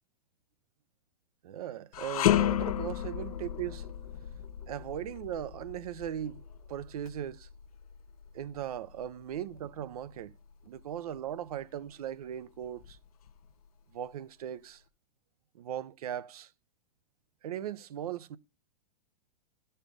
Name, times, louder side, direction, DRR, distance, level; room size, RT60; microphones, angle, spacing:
voice 1, 1.4-3.9 4.7-6.4 6.7-7.5 8.3-10.3 10.6-13.0 13.9-14.8 15.5-16.5 17.4-18.4, right 10 dB, 60° right, 0.7 m, -38 dB
sound 1, 1.9-11.2 11.6-11.8 12.6-13.5, left 12 dB, 60° left, 0.7 m, -34 dB
13.5 x 4.5 x 5.0 m
figure-of-eight pair, 105°, 21 cm